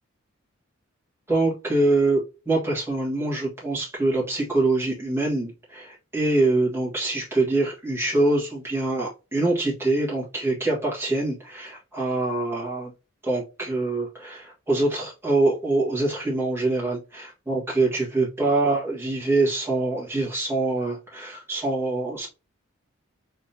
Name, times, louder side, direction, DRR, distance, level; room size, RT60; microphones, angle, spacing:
voice 1, 1.3-12.9 13.2-22.3, right 2 dB, 10° right, 1.6 m, -24 dB
3.8 x 3.5 x 2.7 m
head